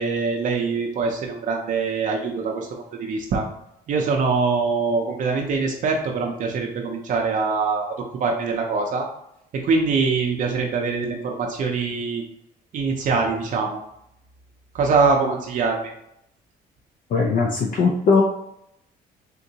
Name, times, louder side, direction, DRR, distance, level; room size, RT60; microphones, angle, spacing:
voice 1, 0.0-3.4 3.9-7.9 8.2-9.1 9.6-12.2 12.7-13.8 14.7-15.9, right 4 dB, 50° right, 1 dB, 0.5 m, -23 dB
voice 2, 17.1-18.2, left 4 dB, 50° left, 1 dB, 0.5 m, -19 dB
3.7 x 2.5 x 2.8 m, 0.78 s
cardioid pair, 110°, 17 cm